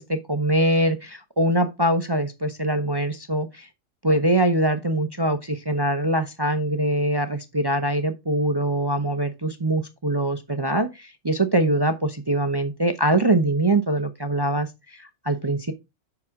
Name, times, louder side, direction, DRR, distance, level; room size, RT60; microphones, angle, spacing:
voice 1, 0.0-3.7 4.0-14.7 15.0-15.7, right 1 dB, 25° right, 0.5 m, -23 dB
7.5 x 6.1 x 3.6 m
omnidirectional pair, 1.4 m